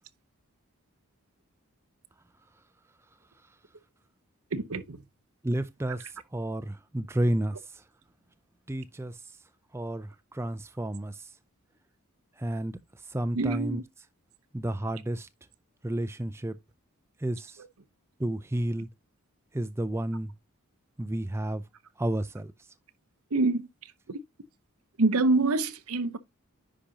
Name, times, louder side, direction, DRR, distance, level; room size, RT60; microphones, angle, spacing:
voice 1, 4.5-5.0 5.9-6.0 13.3-13.8 23.3-23.7 24.1-24.2 25.0-26.2, right 3 dB, 75° right, 0.8 m, -26 dB
voice 2, 5.4-6.1 6.3-7.6 8.7-9.2 9.7-11.3 12.4-12.8 13.1-13.8 14.5-15.3 15.8-16.6 17.2-17.6 18.2-18.9 19.5-20.3 21.0-21.6 22.0-22.5, right 1 dB, 10° right, 0.4 m, -31 dB
10.0 x 5.1 x 2.8 m
head